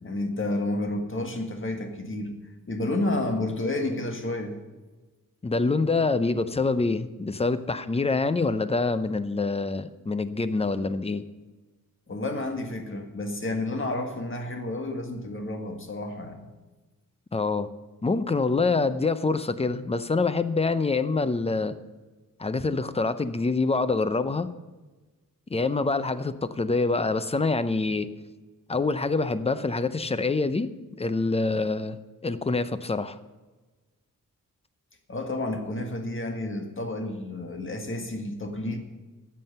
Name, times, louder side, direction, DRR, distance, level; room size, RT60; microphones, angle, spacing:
voice 1, 0.0-2.3 2.7-4.6 12.1-16.4 35.1-38.8, left 2 dB, 35° left, 4 dB, 1.7 m, -30 dB
voice 2, 5.4-11.2 17.3-17.7 18.0-21.8 22.4-24.5 25.5-28.1 28.7-30.7 31.0-33.2, left 3 dB, 20° left, 13 dB, 0.6 m, -26 dB
13.0 x 7.7 x 6.8 m, 1.2 s
wide cardioid pair, 120°, 34 cm